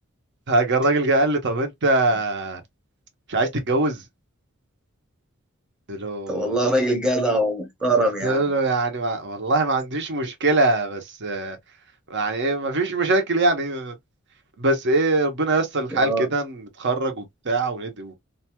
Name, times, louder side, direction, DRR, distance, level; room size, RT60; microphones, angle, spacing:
voice 1, 0.5-2.6 3.3-4.0 5.9-6.6 7.9-11.6 12.1-13.9 14.6-18.2, right 2 dB, 55° right, 0.8 m, -23 dB
voice 2, 6.3-8.4 15.9-16.3, right 1 dB, 5° right, 0.8 m, -22 dB
2.6 x 2.2 x 2.9 m
head